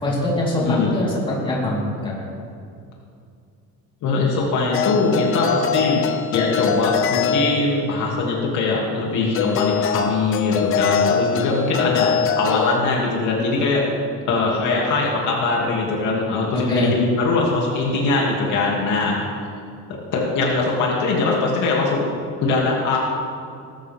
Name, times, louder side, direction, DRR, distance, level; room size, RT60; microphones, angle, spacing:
voice 1, 0.0-2.3 16.5-16.9, left 1 dB, 15° left, -7 dB, 4.1 m, -23 dB
voice 2, 0.6-0.9 4.0-6.0 6.3-13.9 14.3-19.5 19.9-22.1 22.4-23.0, left 3 dB, 60° left, -3 dB, 2.8 m, -21 dB
sound 1, 4.7-8.1 9.3-12.8, left 7 dB, 40° left, 0.8 m, -23 dB
20.0 x 13.0 x 3.7 m, 2.4 s
cardioid pair, 165°, 34 cm